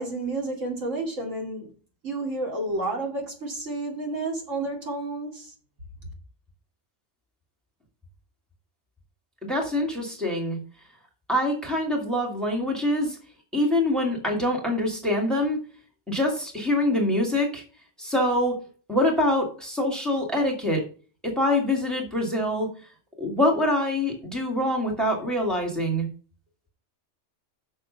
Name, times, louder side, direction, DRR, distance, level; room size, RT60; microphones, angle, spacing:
voice 1, 0.0-1.7 2.0-5.5, right 2 dB, 75° right, 3.0 m, -30 dB
voice 2, 9.4-10.6 11.3-13.2 13.5-15.6 16.1-17.6 18.0-18.6 18.9-20.8 21.2-22.7 23.2-26.1, left 1 dB, ahead, 2.5 m, -25 dB
6.7 x 6.6 x 5.3 m
omnidirectional pair, 1.3 m